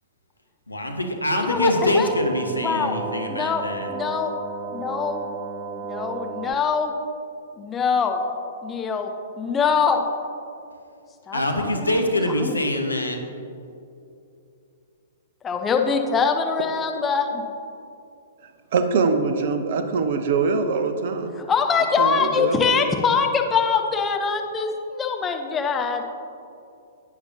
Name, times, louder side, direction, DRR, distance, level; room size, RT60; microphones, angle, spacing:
voice 1, 0.7-3.9 11.3-13.2, left 1 dB, 80° left, 4 dB, 1.0 m, -24 dB
voice 2, 1.4-2.1 2.6-3.0 3.3-3.6 3.9-4.3 4.7-5.3 5.8-6.9 7.6-8.2 8.6-9.1 9.4-10.1 11.3-12.0 12.4-12.6 15.4-17.4 21.4-26.0, left 5 dB, 15° left, 4 dB, 0.7 m, -23 dB
sound 1, 1.5-6.5, right 4 dB, 15° right, 0.4 m, -34 dB
voice 3, 18.7-21.3 22.0-22.8, right 4 dB, 50° right, 8 dB, 0.7 m, -23 dB
11.0 x 8.8 x 2.8 m, 2.6 s
figure-of-eight pair, 110°, 0 cm